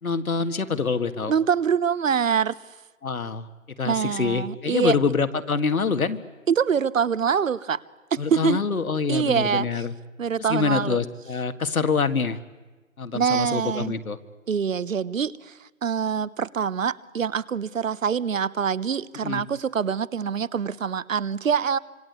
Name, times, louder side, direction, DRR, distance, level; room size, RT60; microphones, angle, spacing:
voice 1, 0.0-1.3 3.0-3.5 3.8-6.2 8.2-9.9 10.5-12.4 13.0-14.2 19.2-19.4, left 5 dB, 85° left, 10 dB, 2.0 m, -25 dB
voice 2, 1.3-2.6 3.8-5.0 6.5-7.8 8.1-8.6 9.1-9.7 10.2-11.0 13.1-13.9 14.5-21.8, right 7 dB, 65° right, 20 dB, 1.0 m, -25 dB
26.0 x 24.5 x 8.3 m, 1.2 s
figure-of-eight pair, 155°, 41 cm